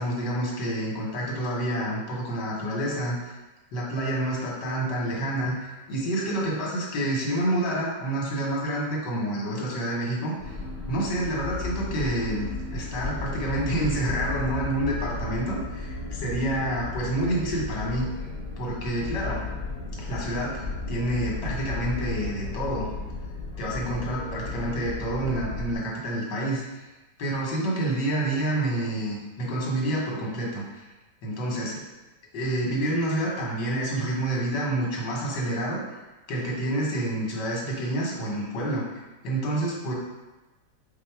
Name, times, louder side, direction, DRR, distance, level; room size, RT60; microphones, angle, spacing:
voice 1, 0.0-3.3 3.7-10.5 10.9-18.1 18.6-19.5 20.0-22.9 23.6-26.6 27.2-30.8 31.2-31.9 32.3-35.8 36.3-39.9, right 1 dB, 80° left, -3 dB, 1.6 m, -28 dB
sound 1, 10.4-25.8, left 3 dB, 20° left, 0.4 m, -34 dB
4.6 x 2.0 x 4.5 m, 1.1 s
omnidirectional pair, 1.8 m